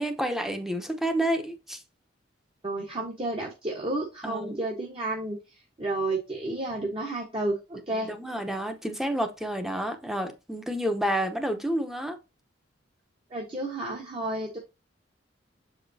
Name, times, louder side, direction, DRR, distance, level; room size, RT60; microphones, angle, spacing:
voice 1, 0.0-1.8 4.2-4.6 7.9-12.2, right 1 dB, ahead, 0.9 m, -29 dB
voice 2, 2.6-5.4 5.8-8.1 13.3-14.6, right 2 dB, 30° right, 1.2 m, -31 dB
7.2 x 5.0 x 2.7 m
head